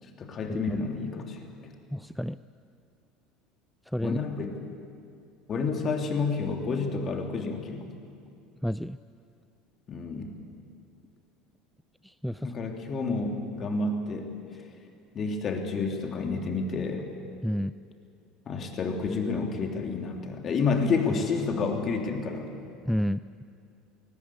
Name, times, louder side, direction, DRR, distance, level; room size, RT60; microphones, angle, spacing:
voice 1, 0.0-1.4 4.0-4.6 5.5-7.9 9.9-10.3 12.4-14.3 15.1-17.1 18.5-22.5, left 4 dB, 40° left, 3 dB, 3.2 m, -29 dB
voice 2, 1.9-2.4 3.9-4.2 8.6-9.0 12.0-12.5 17.4-17.7 22.9-23.2, equal, ahead, 15 dB, 0.4 m, -29 dB
20.0 x 19.0 x 8.6 m, 2.4 s
hypercardioid pair, 70°, 0 cm